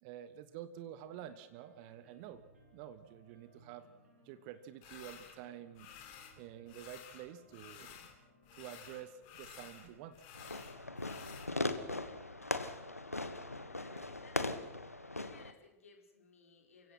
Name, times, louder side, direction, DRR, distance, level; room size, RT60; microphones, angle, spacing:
voice 1, 0.0-2.4 2.7-3.9 4.2-5.9 6.4-8.0 8.6-10.2, right 11 dB, 50° right, 13 dB, 1.3 m, -49 dB
sound 1, 1.1-14.0, right 1 dB, 75° right, 6.2 m, -66 dB
sound 2, 4.8-5.4 5.7-6.4 6.7-8.2 8.4-11.5, left 9 dB, 50° left, 3.7 m, -53 dB
Fireworks, 10.3-15.5, left 2 dB, 90° left, 1.5 m, -39 dB
voice 2, 13.6-14.9 15.2-16.9, left 4 dB, 70° left, 3 dB, 4.5 m, -60 dB
29.0 x 16.5 x 6.0 m, 0.83 s
figure-of-eight pair, 90°, 8 cm